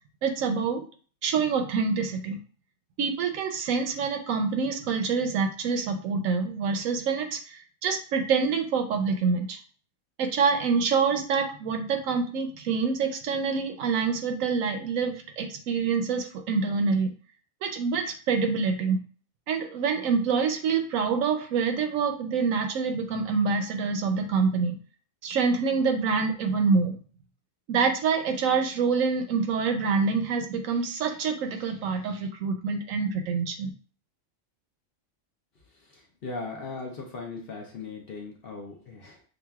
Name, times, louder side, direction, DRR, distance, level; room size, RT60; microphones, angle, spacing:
voice 1, 0.2-0.8 1.2-2.4 3.0-9.6 10.2-17.1 17.6-19.0 19.5-24.8 25.2-27.0 27.7-33.7, right 5 dB, 75° right, 6 dB, 1.0 m, -26 dB
voice 2, 35.7-39.2, left 3 dB, 55° left, 0 dB, 0.7 m, -38 dB
6.1 x 2.4 x 2.2 m, 0.41 s
omnidirectional pair, 1.4 m